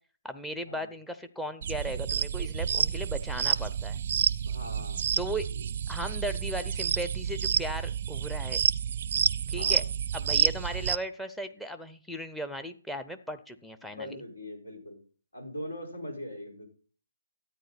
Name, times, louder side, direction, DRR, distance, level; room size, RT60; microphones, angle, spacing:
voice 1, 0.2-4.0 5.2-5.5 5.9-8.6 9.5-9.8 10.1-14.2, equal, ahead, 11 dB, 0.7 m, -37 dB
sound 1, 1.6-11.0, right 8 dB, 45° right, 0.5 m, -29 dB
voice 2, 4.4-5.1 5.5-5.6 9.5-9.9 14.0-15.0 15.3-16.7, left 1 dB, 80° left, 1 dB, 4.6 m, -41 dB
13.0 x 9.0 x 4.2 m, 0.42 s
figure-of-eight pair, 140°, 0 cm